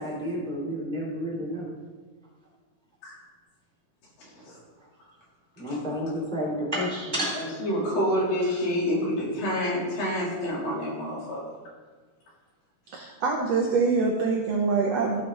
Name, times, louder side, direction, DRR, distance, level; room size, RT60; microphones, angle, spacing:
voice 1, 0.0-1.7 5.6-7.4, equal, 15° right, -5 dB, 3.7 m, -30 dB
voice 2, 7.3-11.4, equal, 90° left, -5 dB, 5.2 m, -28 dB
voice 3, 12.9-15.2, right 4 dB, 70° right, 1 dB, 1.6 m, -25 dB
15.0 x 8.6 x 3.9 m, 1.4 s
omnidirectional pair, 3.8 m